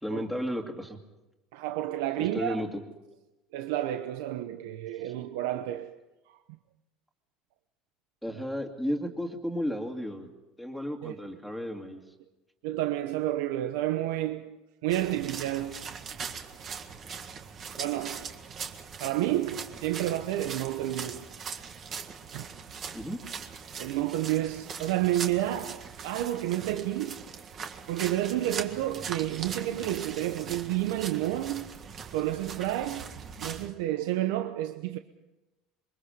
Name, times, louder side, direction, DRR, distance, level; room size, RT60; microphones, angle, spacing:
voice 1, 0.0-1.0 2.2-2.8 5.0-5.1 8.2-10.3 10.6-12.0 22.9-23.2, equal, ahead, 2.4 m, -33 dB
voice 2, 1.5-2.6 3.5-6.0 6.3-6.4 11.0-11.2 12.6-14.5 14.8-15.9 17.8-18.3 19.0-21.3 22.3-22.5 23.8-27.2 27.9-31.7 32.1-35.0, right 14 dB, 90° right, 1.0 m, -30 dB
sound 1, 14.9-33.7, right 6 dB, 30° right, 1.8 m, -41 dB
27.5 x 23.5 x 5.2 m
cardioid pair, 155°, 0 cm